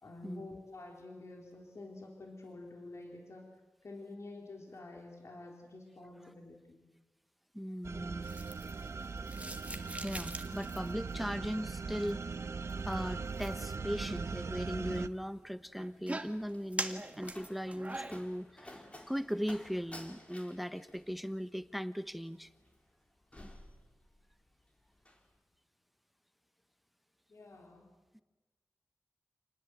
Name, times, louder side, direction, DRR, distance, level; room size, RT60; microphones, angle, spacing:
voice 1, 0.0-3.5 3.8-6.9 27.3-27.9, left 2 dB, 65° left, 1 dB, 3.8 m, -49 dB
voice 2, 7.5-8.3 9.9-12.2 12.8-22.5, equal, ahead, 12 dB, 0.9 m, -38 dB
sound 1, 7.8-15.1, right 4 dB, 65° right, 0.9 m, -40 dB
sound 2, 8.2-18.2, right 2 dB, 25° right, 1.8 m, -45 dB
Slam, 16.0-24.5 24.8-25.3, left 1 dB, 25° left, 4.1 m, -54 dB
28.0 x 19.5 x 8.0 m, 1.2 s
wide cardioid pair, 75°, 5 cm